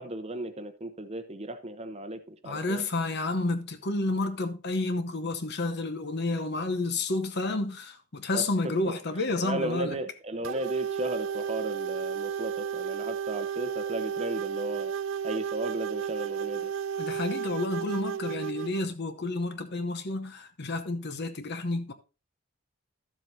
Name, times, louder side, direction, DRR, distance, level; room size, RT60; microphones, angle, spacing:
voice 1, 0.0-2.8 8.3-8.4 8.9-9.0 9.4-14.9 15.2-16.7, right 1 dB, 30° right, 0.8 m, -35 dB
voice 2, 2.4-10.0 17.0-21.9, left 2 dB, 50° left, 0.8 m, -30 dB
sound 1, 10.4-18.8, right 7 dB, 60° right, 0.3 m, -33 dB
13.0 x 7.5 x 2.7 m
head